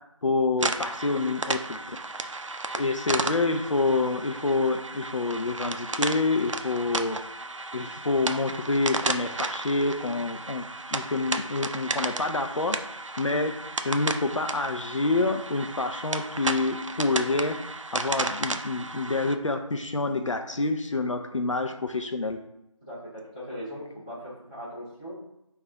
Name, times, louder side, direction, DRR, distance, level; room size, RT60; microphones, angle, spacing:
voice 1, 0.2-2.0 2.7-7.2 7.7-10.6 10.9-12.8 13.2-13.5 13.8-17.6 17.9-22.4, left 3 dB, 70° left, 5 dB, 0.5 m, -27 dB
sound 1, 0.6-19.4, right 3 dB, 65° right, 0.4 m, -33 dB
voice 2, 22.8-25.2, equal, 15° left, -13 dB, 1.2 m, -39 dB
5.4 x 2.4 x 3.7 m, 0.83 s
figure-of-eight pair, 180°, 17 cm